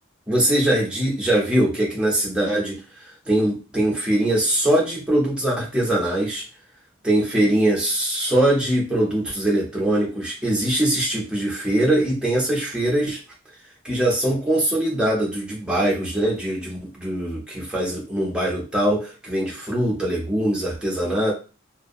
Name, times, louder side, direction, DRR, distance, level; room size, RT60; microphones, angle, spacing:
voice 1, 0.3-6.4 7.0-13.2 13.8-21.3, right 1 dB, 5° right, -4 dB, 0.7 m, -22 dB
2.5 x 2.2 x 2.6 m, 0.33 s
head